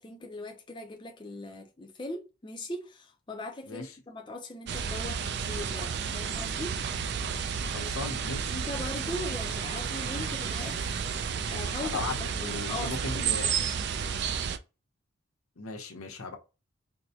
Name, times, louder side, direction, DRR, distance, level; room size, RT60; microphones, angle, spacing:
voice 1, 0.0-6.8 7.7-7.9 8.5-10.8 11.1-13.7, left 2 dB, 20° left, 0.4 m, -40 dB
sound 1, 4.7-14.6, right 7 dB, 50° right, 0.3 m, -32 dB
voice 2, 7.6-8.5 11.8-13.5 15.6-16.4, left 3 dB, 85° left, 0.8 m, -37 dB
sound 2, 9.0-11.9, right 3 dB, 80° right, 1.7 m, -48 dB
4.5 x 2.0 x 2.7 m
head